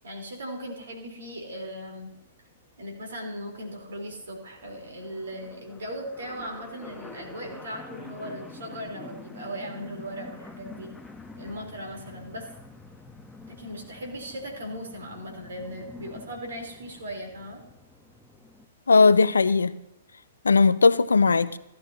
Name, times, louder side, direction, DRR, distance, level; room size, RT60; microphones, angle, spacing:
voice 1, 0.0-2.1 2.8-10.9 11.4-12.5 13.6-17.6, equal, 75° right, 4.0 m, -38 dB
sound 1, 2.1-2.3 2.6-2.7 2.8-18.7, left 3 dB, 10° left, 1.1 m, -47 dB
voice 2, 18.9-19.7 20.4-21.6, left 4 dB, 80° left, 0.6 m, -18 dB
15.5 x 12.0 x 2.9 m
figure-of-eight pair, 115°, 0 cm